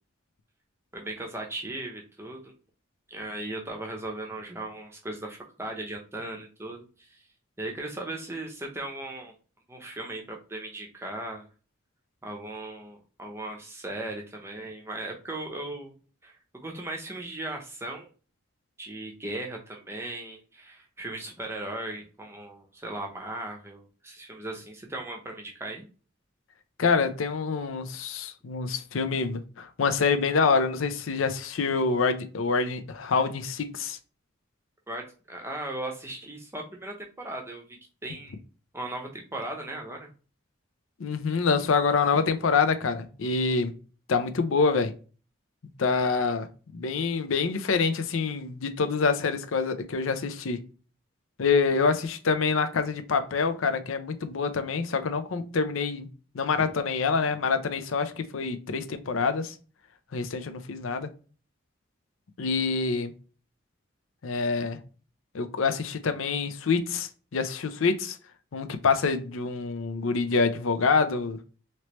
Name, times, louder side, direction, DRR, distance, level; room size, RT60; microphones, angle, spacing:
voice 1, 0.9-2.5 3.1-7.2 7.6-9.3 9.7-11.5 12.2-15.9 16.2-16.4 16.6-18.1 18.8-25.9 34.9-38.4 38.7-40.1, right 2 dB, 10° right, 0.7 m, -37 dB
voice 2, 26.8-34.0 41.0-43.7 44.1-44.9 45.8-46.5 46.7-50.6 51.4-56.1 56.3-59.5 60.1-61.1 62.4-63.1 64.2-64.8 65.3-68.2 68.5-71.4, left 4 dB, 80° left, 0.5 m, -26 dB
3.1 x 2.9 x 3.0 m
head